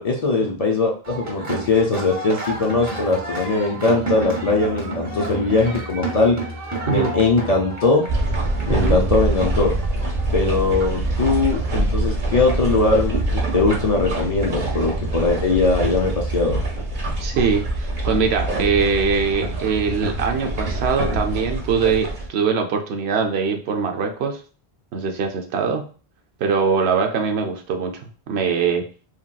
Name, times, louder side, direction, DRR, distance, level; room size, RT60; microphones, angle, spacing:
voice 1, 0.0-6.4 6.9-8.1 8.7-9.7 10.3-16.6, left 3 dB, 50° left, -1 dB, 0.5 m, -20 dB
sound 1, 1.0-10.6, right 2 dB, 20° right, 0.7 m, -31 dB
sound 2, 8.1-22.3, right 2 dB, 55° right, 0.8 m, -24 dB
voice 2, 17.2-24.4 24.9-25.8 26.4-28.8, right 5 dB, 85° right, 3 dB, 0.8 m, -22 dB
2.9 x 2.8 x 2.2 m, 0.38 s
omnidirectional pair, 1.1 m